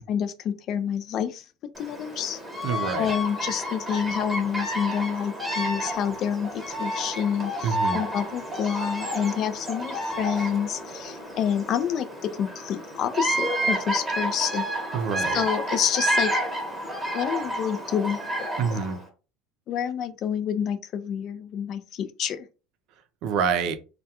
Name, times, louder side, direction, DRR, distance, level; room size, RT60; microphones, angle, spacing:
voice 1, 0.0-1.4 1.8-2.4 3.0-14.7 15.3-16.3 17.1-18.2 18.6-18.8 19.7-22.5, left 8 dB, 50° left, 0.4 m, -28 dB
Bird vocalization bird call bird song, 1.7-19.0, right 1 dB, 5° right, 0.9 m, -30 dB
voice 2, 2.6-3.1 7.6-8.0 14.9-15.4 18.6-19.0 23.2-23.8, right 6 dB, 60° right, 0.4 m, -26 dB
2.2 x 2.2 x 2.8 m
supercardioid pair, 95°, 0 cm